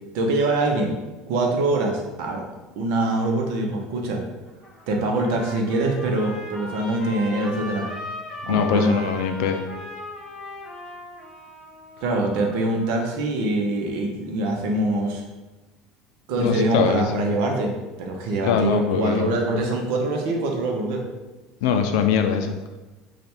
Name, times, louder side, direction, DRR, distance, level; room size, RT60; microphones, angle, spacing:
voice 1, 0.1-1.0 1.3-2.4 2.8-4.2 4.9-7.9 8.5-9.0 12.0-15.2 16.3-21.0, right 2 dB, 60° right, 1 dB, 0.8 m, -24 dB
Trumpet, 4.5-12.9, left 1 dB, 25° left, 0.7 m, -38 dB
voice 2, 8.5-9.6 16.4-17.4 18.4-19.2 21.6-22.6, left 6 dB, 80° left, 7 dB, 0.4 m, -22 dB
3.3 x 2.4 x 4.3 m, 1.2 s
cardioid pair, 175°, 2 cm